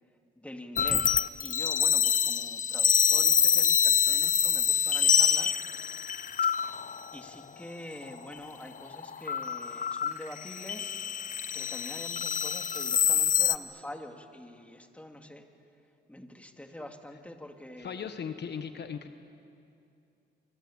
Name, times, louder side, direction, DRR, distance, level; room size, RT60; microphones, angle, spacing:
voice 1, 0.4-5.6 6.4-15.4 16.1-18.1, left 1 dB, 5° left, 4 dB, 2.6 m, -46 dB
sound 1, 0.8-7.2 8.0-8.4 8.7-13.6, left 7 dB, 45° left, 0.8 m, -26 dB
voice 2, 17.8-19.1, left 7 dB, 60° left, 8 dB, 1.4 m, -37 dB
26.5 x 25.0 x 8.8 m, 2.6 s
cardioid pair, 85°, 20 cm